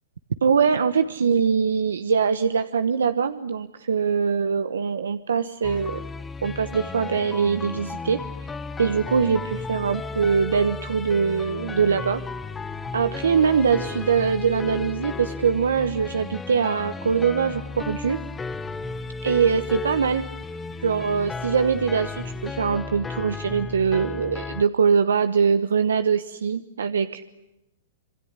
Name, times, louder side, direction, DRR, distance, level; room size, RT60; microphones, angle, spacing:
voice 1, 0.4-6.0 6.4-8.2 8.8-12.2 12.9-18.2 19.2-20.3 20.8-27.2, right 6 dB, 85° right, 10 dB, 1.1 m, -22 dB
sound 1, 5.6-24.6, left 4 dB, 15° left, 1.2 m, -34 dB
27.0 x 23.0 x 9.7 m, 0.92 s
hypercardioid pair, 125°, 0 cm